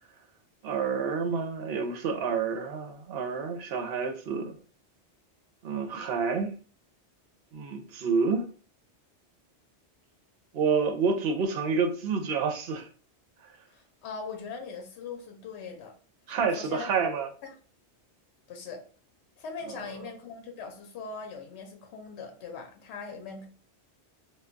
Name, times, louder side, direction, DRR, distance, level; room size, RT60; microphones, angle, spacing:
voice 1, 0.6-4.5 5.6-6.5 7.5-8.5 10.5-12.9 16.3-17.3 19.7-19.8, right 5 dB, 65° right, 0.8 m, -28 dB
voice 2, 13.7-15.9 16.6-16.9 17.4-17.5 18.5-18.8 19.4-23.5, left 5 dB, 75° left, 0.8 m, -40 dB
2.2 x 2.2 x 3.7 m
omnidirectional pair, 1.2 m